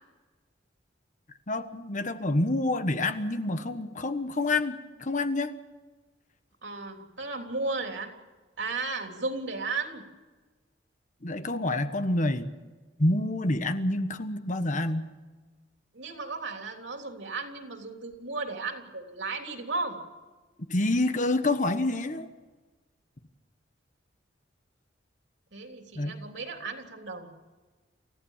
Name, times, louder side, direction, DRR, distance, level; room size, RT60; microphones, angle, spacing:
voice 1, 1.5-5.5 11.2-12.5 13.0-15.1 20.7-22.3 25.9-26.2, left 2 dB, 40° left, 9 dB, 1.3 m, -27 dB
voice 2, 6.6-8.1 8.6-10.0 15.9-20.0 25.5-27.3, right 3 dB, 70° right, 3 dB, 3.4 m, -34 dB
28.5 x 15.0 x 7.4 m, 1.3 s
head